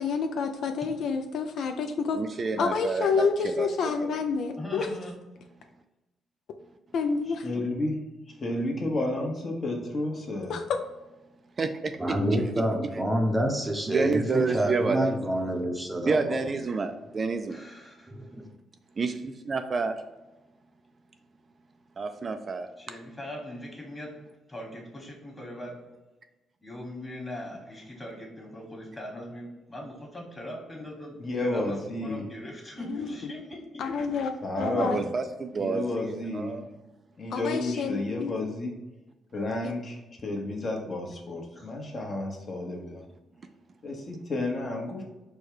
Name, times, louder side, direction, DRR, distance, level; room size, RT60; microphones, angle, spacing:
voice 1, 0.0-2.2 2.6-4.9 6.9-7.4 10.5-10.6 32.9-33.3 33.8-34.3 34.6-35.0 37.3-38.3 39.6-39.7, left 5 dB, 70° left, 5 dB, 0.4 m, -28 dB
voice 2, 2.1-3.3 3.6-3.7 4.0-4.1 11.6-12.4 13.9-15.2 16.1-17.6 19.0-20.0 22.0-22.7 34.6-36.6, right 4 dB, 40° right, 7 dB, 0.3 m, -29 dB
voice 3, 4.6-5.2 14.3-14.7 17.5-18.1 22.8-24.1 24.5-25.7 26.6-33.8 41.5-41.7 43.2-43.3, left 1 dB, 20° left, -1 dB, 1.5 m, -40 dB
voice 4, 7.3-8.0 8.4-10.6 31.2-32.3 34.4-35.1 35.6-36.6 37.2-38.7 39.3-43.0 43.8-45.0, left 2 dB, 40° left, 1 dB, 1.0 m, -31 dB
voice 5, 12.0-16.5 18.1-18.5, equal, 10° right, 1 dB, 0.7 m, -28 dB
4.5 x 2.2 x 4.7 m, 1.1 s
cardioid pair, 90°, 0 cm